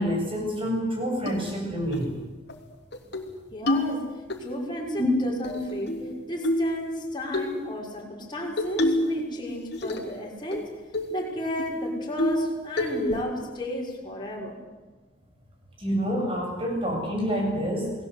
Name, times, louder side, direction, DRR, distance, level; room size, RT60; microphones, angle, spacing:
voice 1, 0.0-2.1 5.0-5.1 6.0-6.1 15.8-17.9, equal, 25° right, 1 dB, 7.9 m, -27 dB
sound 1, 1.3-1.4 1.9-2.1 2.5-2.6 2.9-3.3 3.7-4.4 5.4-6.1 6.4-6.7 7.3-7.5 8.6-9.2 9.5-10.2 10.5-10.6 10.9-11.2 11.6-11.7 12.2-12.5 12.8-13.2, left 1 dB, 55° left, 3.0 m, -27 dB
voice 2, 3.5-6.0 6.3-10.7 11.1-14.6, left 1 dB, 25° left, -2 dB, 5.8 m, -32 dB
29.5 x 20.0 x 8.3 m, 1.2 s
head